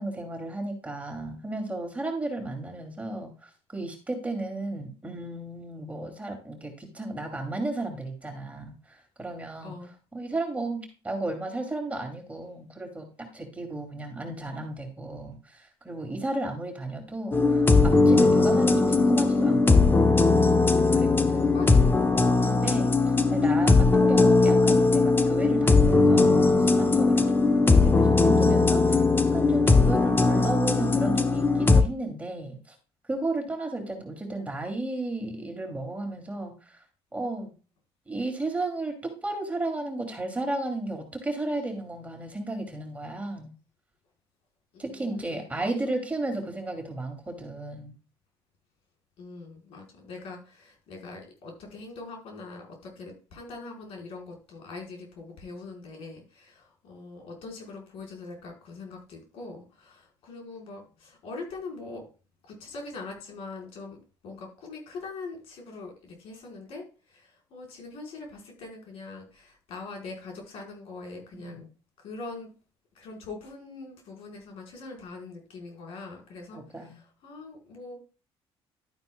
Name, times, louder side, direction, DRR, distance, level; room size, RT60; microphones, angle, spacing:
voice 1, 0.0-9.8 10.1-20.2 20.8-21.4 22.1-23.0 23.3-29.0 29.3-32.7 33.1-36.8 37.1-37.5 38.1-43.5 44.8-47.9 71.3-71.6 76.5-77.0, right 2 dB, 15° right, 3 dB, 2.9 m, -34 dB
voice 2, 9.6-9.9 21.3-21.9 22.2-22.5 44.7-46.0 49.2-62.0 62.5-64.0 64.2-66.8 67.1-71.6 72.0-72.5 72.9-78.0, left 3 dB, 75° left, 1 dB, 4.9 m, -42 dB
sound 1, 17.3-31.8, left 3 dB, 20° left, 1.0 m, -20 dB
12.0 x 9.5 x 2.4 m, 0.35 s
cardioid pair, 115°, 10 cm